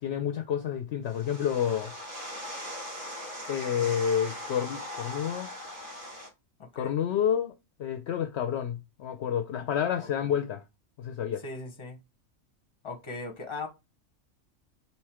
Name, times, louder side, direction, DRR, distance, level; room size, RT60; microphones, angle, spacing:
voice 1, 0.0-1.9 3.5-5.5 6.8-7.5 7.8-10.6 11.0-11.4, left 9 dB, 65° left, 0.7 m, -29 dB
sound 1, 1.1-6.3, left 1 dB, 40° right, 2.0 m, -40 dB
voice 2, 6.6-7.0 11.4-12.0 12.8-13.7, left 3 dB, 25° left, 0.9 m, -39 dB
4.5 x 2.8 x 3.5 m
omnidirectional pair, 1.4 m